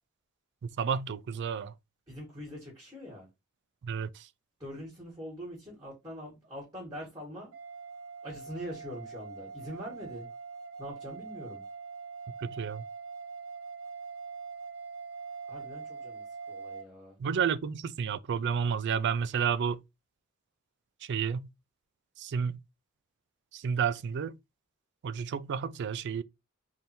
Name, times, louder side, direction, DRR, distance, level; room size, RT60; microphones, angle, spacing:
voice 1, 0.6-1.7 3.8-4.3 12.4-12.8 17.2-19.8 21.0-21.5 22.2-22.6 23.5-24.4 25.0-26.2, right 7 dB, 55° right, 0.4 m, -31 dB
voice 2, 2.1-3.3 4.6-7.5 8.2-10.3 10.8-11.6 15.5-17.2, equal, 20° right, 1.6 m, -43 dB
sound 1, 7.5-16.9, right 5 dB, 80° right, 0.7 m, -43 dB
3.5 x 2.7 x 4.3 m
head